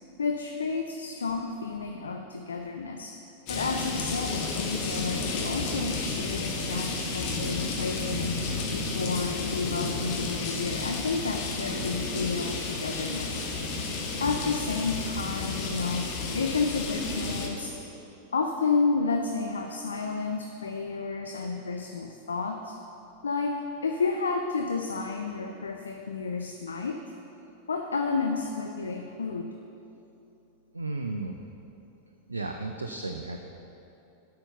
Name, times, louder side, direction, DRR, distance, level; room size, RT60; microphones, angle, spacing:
voice 1, 0.2-3.2 3.5-8.4 8.7-13.5 14.2-17.8 18.3-22.8 23.2-23.6 23.8-27.0 27.7-29.5, left 4 dB, 70° left, 4 dB, 0.4 m, -31 dB
sound 1, 3.5-17.5, left 3 dB, 40° left, 1.3 m, -32 dB
voice 2, 30.7-31.4 32.3-33.4, right 3 dB, 80° right, 4 dB, 0.4 m, -34 dB
8.6 x 5.8 x 6.7 m, 2.9 s
figure-of-eight pair, 90°, 0 cm